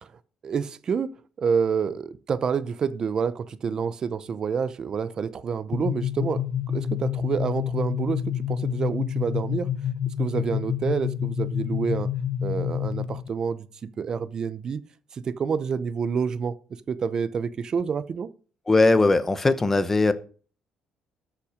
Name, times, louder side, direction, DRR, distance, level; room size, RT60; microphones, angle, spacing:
voice 1, 0.4-1.1 1.4-9.7 10.2-12.1 12.4-13.7 14.0-14.8 15.1-16.6 16.9-18.3, right 6 dB, 35° right, 0.6 m, -28 dB
sound 1, 5.7-13.3, left 9 dB, 45° left, 0.8 m, -28 dB
voice 2, 18.7-20.1, left 3 dB, 15° left, 0.8 m, -19 dB
13.0 x 5.8 x 5.0 m
cardioid pair, 155°, 2 cm